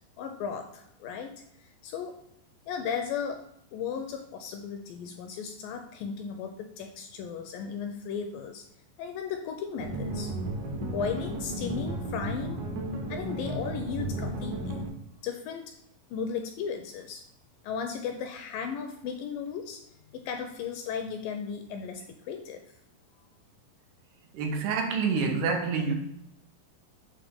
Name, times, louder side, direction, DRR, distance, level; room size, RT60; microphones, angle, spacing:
voice 1, 0.2-2.2 2.7-3.4 3.7-8.6 9.0-10.3 10.8-12.7 13.1-14.8 15.2-15.7 16.1-17.2 17.6-19.8 20.1-22.7, left 6 dB, 80° left, 2.0 m, -35 dB
sound 1, 9.8-14.9, right 2 dB, 70° right, 1.7 m, -34 dB
voice 2, 24.3-25.9, right 5 dB, 90° right, 2.8 m, -27 dB
7.2 x 2.8 x 5.1 m
omnidirectional pair, 4.3 m